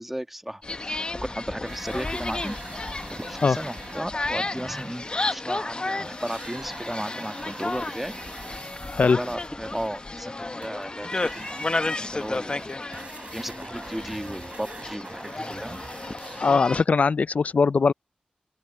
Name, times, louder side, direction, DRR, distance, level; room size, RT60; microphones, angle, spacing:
voice 1, 0.0-8.1 9.0-11.5 11.8-12.7 13.3-15.8, equal, 5° right, 1.4 m, -35 dB
sound 1, 0.6-16.8, left 2 dB, 35° left, 1.0 m, -33 dB
sound 2, 1.6-5.7 6.0-16.8, right 3 dB, 45° right, 7.4 m, -44 dB
voice 2, 16.4-17.9, left 4 dB, 60° left, 0.3 m, -20 dB
open air
wide cardioid pair, 80°, 3 cm